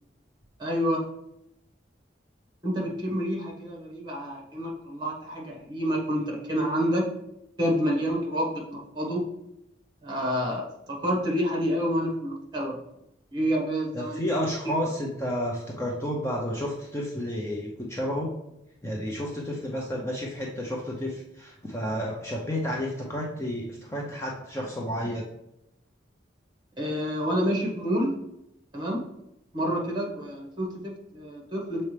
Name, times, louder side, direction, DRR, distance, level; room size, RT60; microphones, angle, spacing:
voice 1, 0.6-1.1 2.6-7.1 7.6-9.2 10.0-12.8 13.3-14.5 26.8-28.2 28.7-29.0 29.5-31.8, equal, 25° right, -1 dB, 1.4 m, -28 dB
voice 2, 13.9-18.3 18.8-25.3, equal, 15° left, -3 dB, 0.6 m, -31 dB
6.9 x 4.2 x 3.3 m, 0.83 s
head